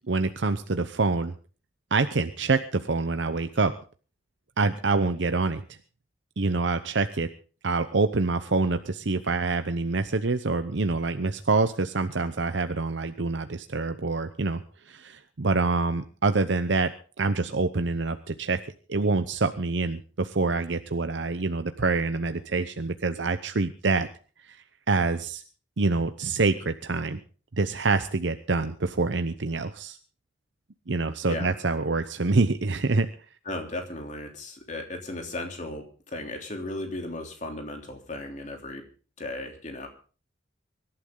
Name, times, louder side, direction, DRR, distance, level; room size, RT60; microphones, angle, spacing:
voice 1, 0.1-1.3 1.9-3.7 4.6-5.6 6.4-7.3 7.6-16.9 17.2-18.6 18.9-24.1 24.5-24.6 24.9-25.4 25.8-27.2 27.6-30.0 30.9-33.1, right 3 dB, 75° right, 9 dB, 0.8 m, -26 dB
voice 2, 33.4-38.8 39.2-39.9, left 1 dB, 40° left, 3 dB, 3.2 m, -36 dB
24.5 x 11.5 x 3.8 m, 0.39 s
head